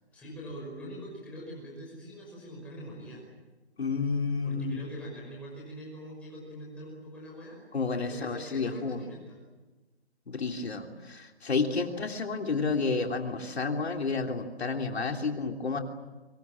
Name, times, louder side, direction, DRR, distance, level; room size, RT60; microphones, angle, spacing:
voice 1, 0.1-3.2 4.4-7.6 8.0-9.4, equal, 5° left, -4 dB, 5.6 m, -43 dB
voice 2, 3.8-4.8 7.7-9.0 10.3-15.8, left 4 dB, 70° left, 3 dB, 3.2 m, -30 dB
27.5 x 25.0 x 7.5 m, 1.2 s
hypercardioid pair, 175°, 33 cm